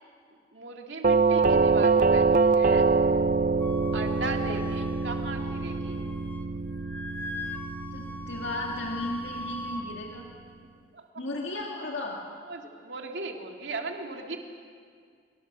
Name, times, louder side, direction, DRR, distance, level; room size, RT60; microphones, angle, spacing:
voice 1, 0.5-2.9 3.9-6.1 10.9-11.2 12.5-14.4, right 3 dB, 85° right, 2 dB, 2.4 m, -37 dB
Doorbell, 1.0-9.9, right 4 dB, 50° right, 0.5 m, -25 dB
Wind instrument woodwind instrument, 3.6-6.5 6.8-9.8, left 2 dB, 10° left, 1.3 m, -40 dB
voice 2, 7.9-10.2 11.2-12.2, left 2 dB, 80° left, -1 dB, 2.3 m, -35 dB
24.5 x 24.0 x 6.8 m, 2.2 s
head